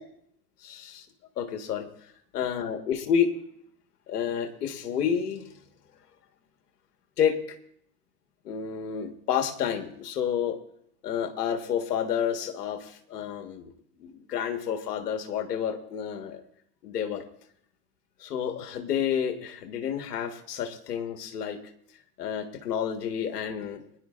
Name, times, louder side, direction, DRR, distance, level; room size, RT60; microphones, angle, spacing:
voice 1, 0.6-1.0 1.4-1.9 2.3-3.3 4.1-5.5 7.2-7.6 8.4-10.6 11.0-13.7 14.0-16.4 16.8-17.2 18.2-21.6 22.2-23.8, left 8 dB, 80° left, 6 dB, 1.6 m, -30 dB
23.5 x 11.0 x 2.5 m, 0.67 s
hypercardioid pair, 105°, 46 cm